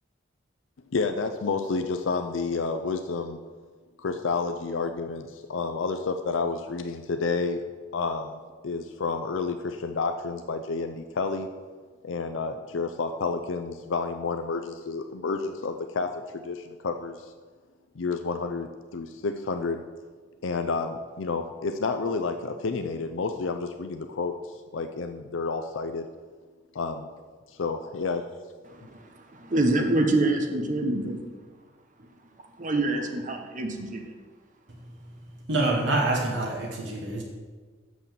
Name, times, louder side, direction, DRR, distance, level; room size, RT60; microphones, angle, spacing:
voice 1, 0.9-3.4 4.0-7.6 7.9-11.5 12.0-17.3 18.0-19.8 20.4-24.4 24.7-26.1 26.7-27.1 27.5-28.2, left 4 dB, 85° left, 7 dB, 0.5 m, -30 dB
voice 2, 28.6-31.2 32.6-34.1, right 2 dB, 45° right, 4 dB, 1.0 m, -26 dB
voice 3, 35.5-37.2, right 2 dB, 65° right, -1 dB, 1.3 m, -26 dB
6.8 x 6.2 x 7.4 m, 1.4 s
head